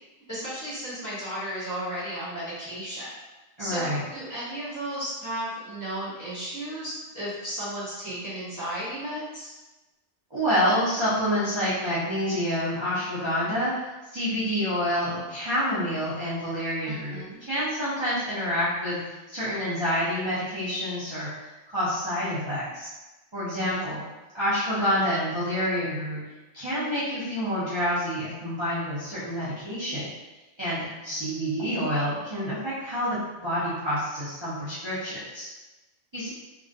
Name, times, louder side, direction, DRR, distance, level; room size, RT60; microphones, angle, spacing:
voice 1, 0.3-3.1 3.6-9.5 16.8-17.4 23.5-23.9, right 1 dB, 20° left, -12 dB, 0.7 m, -34 dB
voice 2, 3.6-4.0 10.3-19.0 19.3-21.3 21.7-22.9 23.3-24.0 24.3-26.2 26.5-30.1 30.6-35.5 36.1-36.3, equal, 40° right, -11 dB, 0.4 m, -28 dB
2.3 x 2.1 x 2.5 m, 1.1 s
omnidirectional pair, 1.3 m